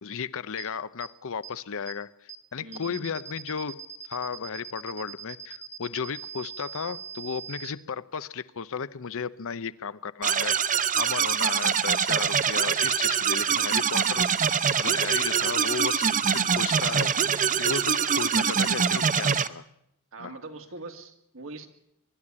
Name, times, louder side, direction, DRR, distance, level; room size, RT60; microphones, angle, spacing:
voice 1, 0.0-2.1 2.5-3.8 4.1-10.6 11.0-14.4 14.8-17.1 17.6-19.6 20.2-20.4, left 6 dB, 65° left, 0.7 m, -34 dB
sound 1, 0.6-0.7 1.0-1.1 1.4-1.5 1.9-2.0 2.3-2.4 2.7-7.7, right 7 dB, 25° left, 1.4 m, -41 dB
voice 2, 2.6-3.2 20.1-21.7, right 2 dB, 65° right, 2.3 m, -42 dB
sound 2, 10.2-19.5, right 7 dB, 35° right, 0.7 m, -24 dB
23.5 x 11.5 x 9.7 m
head